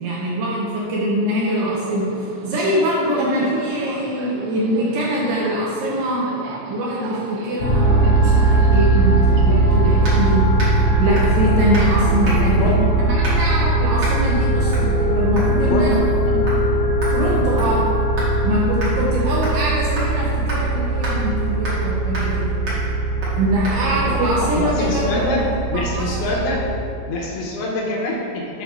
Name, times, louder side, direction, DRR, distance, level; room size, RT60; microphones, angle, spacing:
voice 1, 0.0-2.1 2.4-6.3 6.7-10.4 11.0-12.7 13.0-16.0 16.3-16.5 17.1-17.9 18.4-22.5 23.4-25.5 25.7-26.1, right 1 dB, 70° right, -5 dB, 2.7 m, -23 dB
Subway metro underground, 1.4-10.3, right 4 dB, 90° right, 2.5 m, -37 dB
sound 1, 7.6-26.7, right 2 dB, 55° left, 1.7 m, -19 dB
sound 2, 10.0-10.2 10.6-10.8 11.2-11.4 11.7-11.9 12.2-12.6 13.2-13.5 14.0-14.2 14.7-14.9 15.4-15.5 15.9-16.2 16.5-16.6 17.0-18.3 18.8-18.9 19.4-19.7 20.0-20.1 20.5-20.6 21.0-21.2 21.6-21.9 22.1-22.4 22.7-22.8 23.2-23.4 23.6-23.8, right 1 dB, 50° right, 1.5 m, -30 dB
voice 2, 12.4-12.8 15.5-15.9 23.7-25.4 25.7-26.6 27.1-28.6, left 2 dB, 75° left, -3 dB, 3.1 m, -25 dB
8.2 x 4.0 x 6.2 m, 2.6 s
omnidirectional pair, 5.7 m